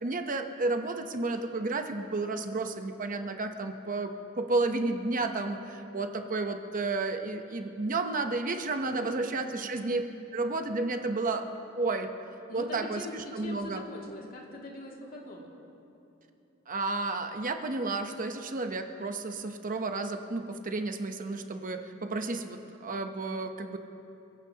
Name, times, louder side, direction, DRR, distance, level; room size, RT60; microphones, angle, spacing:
voice 1, 0.0-10.0 10.3-11.5 11.8-12.1 12.5-13.8 16.7-23.8, right 3 dB, 40° right, 6 dB, 0.8 m, -32 dB
voice 2, 9.0-9.7 12.5-15.5, left 1 dB, 45° left, -2 dB, 2.4 m, -43 dB
28.0 x 16.0 x 2.9 m, 2.8 s
head